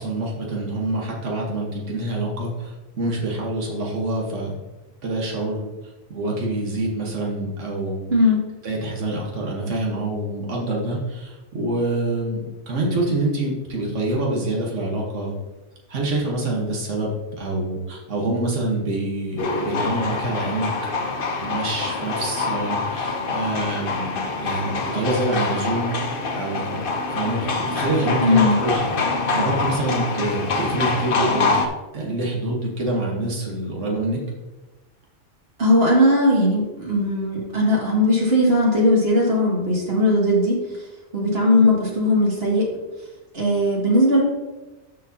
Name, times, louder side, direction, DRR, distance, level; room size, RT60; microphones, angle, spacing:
voice 1, 0.0-4.6 5.0-5.7 6.1-8.1 8.6-15.3 15.9-20.7 21.4-25.9 26.3-34.2, right 2 dB, 80° right, -2 dB, 1.7 m, -26 dB
voice 2, 8.1-8.4 28.2-28.6 35.6-40.6 41.1-42.7 43.3-44.2, left 1 dB, 55° right, -3 dB, 2.3 m, -18 dB
sound 1, 19.4-31.7, left 3 dB, 50° left, 0.9 m, -25 dB
12.5 x 4.8 x 2.8 m, 1.1 s
omnidirectional pair, 1.2 m